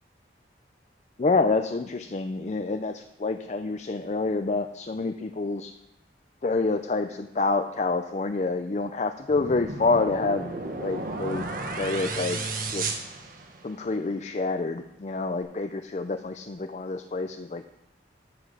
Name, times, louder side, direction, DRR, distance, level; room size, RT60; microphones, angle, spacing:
voice 1, 1.2-5.7 6.4-10.5 10.8-11.5 11.8-12.9 13.6-17.6, left 3 dB, 40° left, 8 dB, 0.4 m, -27 dB
sound 1, 9.3-13.9, right 3 dB, 50° right, 1.3 m, -33 dB
13.0 x 6.0 x 6.6 m, 0.89 s
head